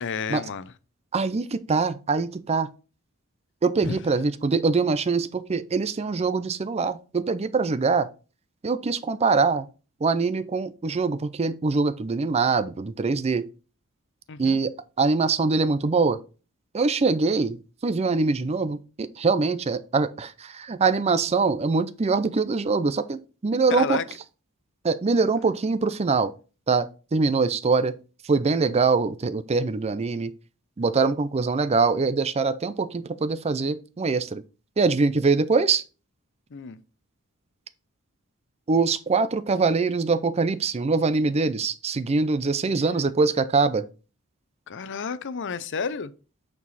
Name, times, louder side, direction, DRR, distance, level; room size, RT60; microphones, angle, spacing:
voice 1, 0.0-0.7 3.8-4.0 14.3-14.6 23.7-24.0 36.5-36.8 42.7-43.1 44.7-46.1, left 5 dB, 60° left, 0.6 m, -31 dB
voice 2, 1.1-2.7 3.6-8.1 8.6-9.7 10.0-13.4 14.4-16.2 16.7-17.6 17.8-24.0 24.8-26.3 26.7-27.9 28.3-30.3 30.8-34.4 34.8-35.8 38.7-43.8, right 4 dB, 30° right, 0.4 m, -23 dB
8.5 x 4.6 x 4.1 m
head